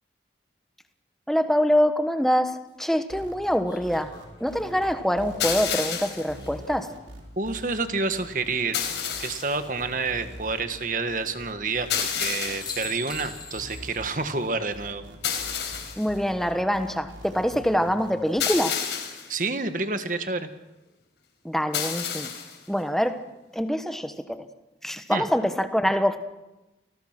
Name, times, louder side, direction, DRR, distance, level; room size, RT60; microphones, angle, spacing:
voice 1, 1.3-4.1 4.4-6.9 16.0-18.8 21.4-22.3 22.7-23.2 23.5-24.4 24.8-26.2, equal, ahead, 9 dB, 1.3 m, -25 dB
sound 1, 2.2-2.3 3.7-6.9 8.7-9.4 12.1-12.3 12.6-14.1 14.5-14.6 16.9-17.4, left 4 dB, 25° left, 6.2 m, -44 dB
sound 2, 3.1-18.4, equal, 85° right, 5.4 m, -44 dB
sound 3, 5.4-6.3 8.7-9.6 11.9-12.8 15.2-16.1 18.4-19.3 21.7-22.6, left 8 dB, 75° left, 4.7 m, -29 dB
voice 2, 7.4-8.8 9.2-15.0 19.3-20.5 25.1-25.2, right 3 dB, 45° right, 9 dB, 1.6 m, -28 dB
29.5 x 20.0 x 6.1 m, 1.0 s
head